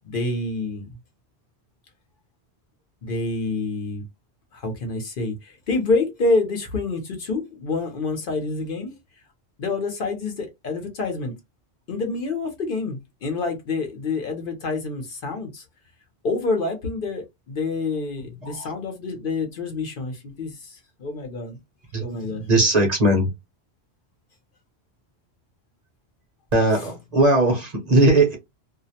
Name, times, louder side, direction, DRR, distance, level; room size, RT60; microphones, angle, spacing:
voice 1, 0.0-0.9 3.0-4.0 4.5-8.9 9.6-11.4 11.9-15.6 16.2-21.6 22.0-22.5, left 3 dB, 55° left, 0.8 m, -27 dB
voice 2, 18.4-18.7 21.9-23.3 26.5-28.4, right 2 dB, 45° right, 0.8 m, -19 dB
2.3 x 2.0 x 2.6 m
omnidirectional pair, 1.1 m